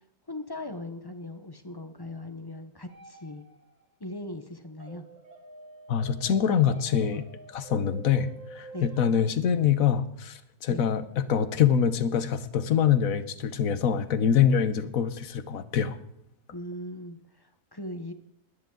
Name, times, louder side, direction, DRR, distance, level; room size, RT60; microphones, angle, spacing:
voice 1, 0.3-3.4 4.0-5.0 8.7-8.9 10.7-10.9 16.5-18.1, left 1 dB, 20° left, 8 dB, 0.8 m, -39 dB
sound 1, 2.9-3.9 4.8-9.1, right 3 dB, 50° right, 1.8 m, -48 dB
voice 2, 5.9-7.3 7.5-16.0, left 8 dB, 65° left, 13 dB, 1.3 m, -25 dB
20.0 x 10.0 x 3.9 m, 0.73 s
omnidirectional pair, 1.6 m